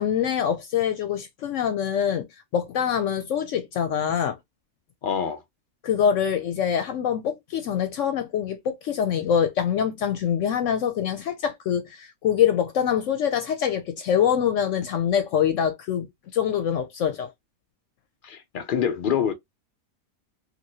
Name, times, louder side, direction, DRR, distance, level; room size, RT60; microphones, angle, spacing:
voice 1, 0.0-2.3 2.5-4.4 5.8-17.3, left 8 dB, 70° left, 0.8 m, -24 dB
voice 2, 5.0-5.4 18.2-19.3, left 8 dB, 85° left, 0.4 m, -25 dB
2.9 x 2.8 x 2.7 m
omnidirectional pair, 1.5 m